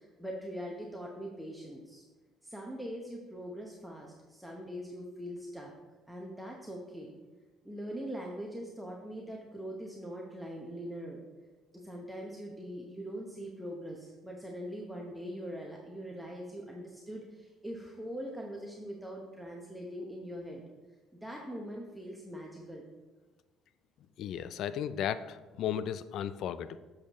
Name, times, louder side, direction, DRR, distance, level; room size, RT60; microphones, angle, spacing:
voice 1, 0.0-2.0 2.4-5.7 6.1-7.1 7.6-11.2 11.7-20.6 21.2-22.8, equal, ahead, -2 dB, 0.9 m, -42 dB
voice 2, 24.2-26.8, left 9 dB, 65° left, 14 dB, 0.3 m, -35 dB
7.1 x 6.4 x 3.0 m, 1.2 s
supercardioid pair, 85°, 0 cm